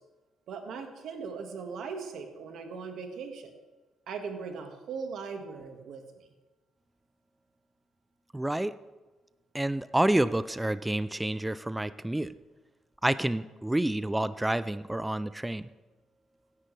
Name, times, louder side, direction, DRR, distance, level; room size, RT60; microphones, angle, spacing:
voice 1, 0.5-3.5 4.1-6.3, right 5 dB, 75° right, 5 dB, 1.7 m, -39 dB
voice 2, 8.3-8.7 9.5-12.3 13.0-15.6, right 1 dB, 10° right, 15 dB, 0.4 m, -28 dB
17.0 x 10.5 x 3.3 m, 1.2 s
cardioid pair, 90°, 0 cm